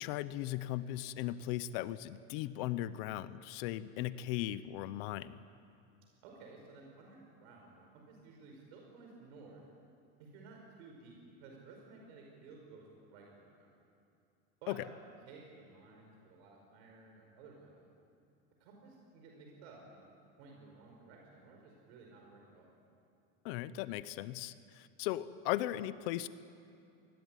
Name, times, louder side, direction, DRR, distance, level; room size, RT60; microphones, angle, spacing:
voice 1, 0.0-5.4 14.7-14.8 23.4-26.3, left 14 dB, 60° left, 15 dB, 0.8 m, -37 dB
voice 2, 6.2-9.6 10.2-13.7 14.6-14.8 15.3-17.9 18.6-20.0 20.4-22.7, right 3 dB, 70° right, 0 dB, 5.3 m, -55 dB
27.5 x 21.0 x 9.2 m, 2.6 s
cardioid pair, 175°, 33 cm